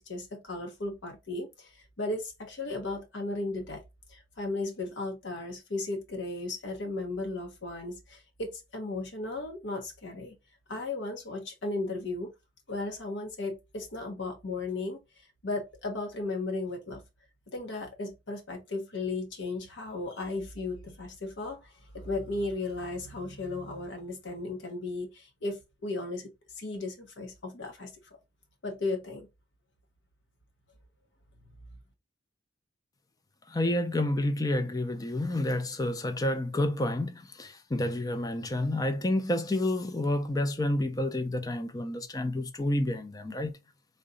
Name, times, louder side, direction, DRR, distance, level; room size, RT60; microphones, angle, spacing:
voice 1, 0.0-3.8 4.1-10.4 10.7-12.3 12.7-17.0 17.5-26.3 26.6-27.9 28.6-29.3 31.4-31.6, left 2 dB, 65° left, 0.7 m, -35 dB
voice 2, 33.5-43.6, left 1 dB, 20° left, 0.4 m, -29 dB
3.8 x 2.2 x 3.7 m
head